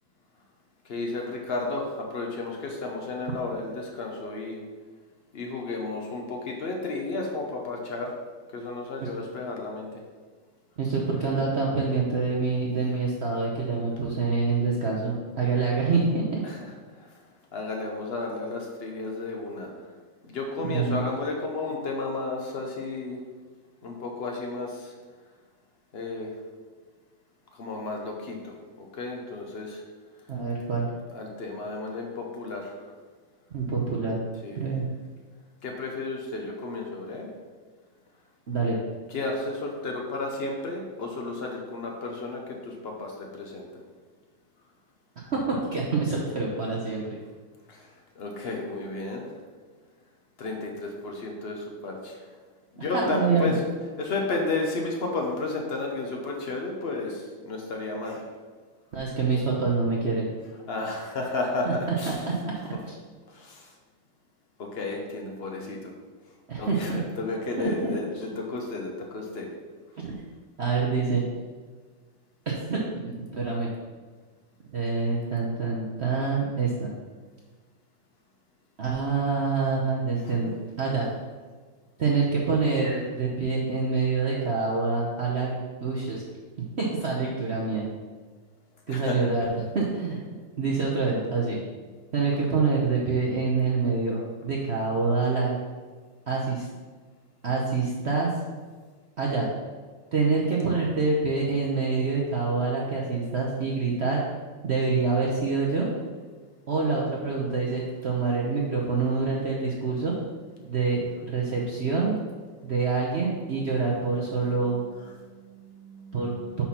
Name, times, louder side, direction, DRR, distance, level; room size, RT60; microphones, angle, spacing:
voice 1, 0.8-4.6 5.3-8.1 8.5-9.9 16.4-16.6 17.0-17.1 17.5-19.7 20.3-23.2 23.8-24.9 25.9-26.3 27.5-29.8 31.1-32.7 34.4-34.7 35.6-37.3 39.1-43.7 47.7-47.9 48.2-49.2 50.4-52.2 52.7-53.5 54.0-58.2 60.7-62.3 63.3-63.7 64.6-65.9 66.6-69.5 88.9-89.2 114.4-116.2, left 3 dB, 80° left, 1 dB, 0.5 m, -33 dB
voice 2, 10.8-16.4 20.6-21.0 30.3-30.9 33.5-34.2 34.6-34.8 38.5-38.8 45.3-47.0 52.9-53.5 58.9-60.3 61.6-62.1 62.9-63.0 66.5-67.0 67.6-67.9 70.0-70.2 70.6-71.2 72.5-72.8 73.0-73.7 74.7-76.9 78.8-80.5 80.8-81.1 82.0-86.2 86.8-87.9 88.9-89.5 89.7-90.2 90.6-91.6 92.1-95.6 96.3-96.7 97.4-98.3 99.2-99.5 100.1-104.2 104.6-105.9 106.7-110.1 110.7-112.2 112.6-114.8 116.1-116.6, right 4 dB, 65° right, -4 dB, 0.6 m, -26 dB
5.8 x 4.2 x 5.8 m, 1.4 s
omnidirectional pair, 2.2 m